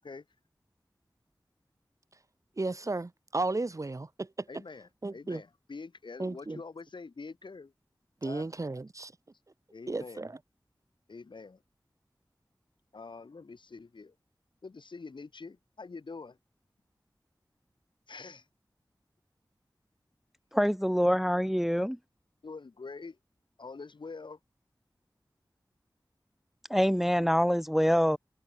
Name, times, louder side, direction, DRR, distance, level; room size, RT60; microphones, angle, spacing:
voice 1, 2.6-4.5 5.0-5.4 6.2-6.6 8.2-9.1 9.9-10.4, right 2 dB, 45° right, 1.0 m, -34 dB
voice 2, 4.5-7.7 8.2-8.5 9.7-10.2 11.1-11.6 12.9-14.1 14.6-16.4 18.1-18.5 22.4-23.2 23.6-24.4, left 4 dB, 85° left, 3.0 m, -45 dB
voice 3, 20.5-22.0 26.7-28.2, equal, 5° right, 0.5 m, -25 dB
wide cardioid pair, 60°, 8 cm